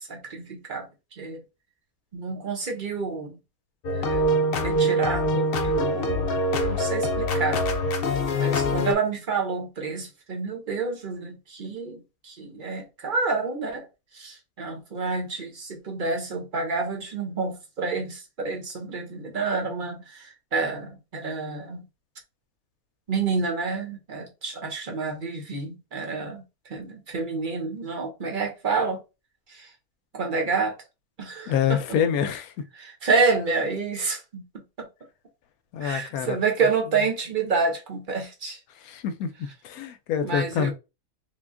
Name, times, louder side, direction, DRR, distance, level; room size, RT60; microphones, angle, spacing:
voice 1, 0.1-0.9 1.2-1.4 2.1-3.3 3.9-6.3 6.6-7.6 8.4-13.8 14.2-21.8 23.1-26.4 26.7-29.0 30.1-30.7 31.2-31.8 32.8-34.4 34.8-34.9 35.8-38.6 40.2-40.7, right 4 dB, 40° right, 0.9 m, -28 dB
sound 1, 3.8-8.9, equal, 65° left, 0.6 m, -24 dB
voice 2, 31.5-32.5 35.7-36.4 38.8-39.3 39.6-40.7, left 8 dB, 80° left, 1.0 m, -26 dB
3.6 x 2.2 x 3.6 m
omnidirectional pair, 1.5 m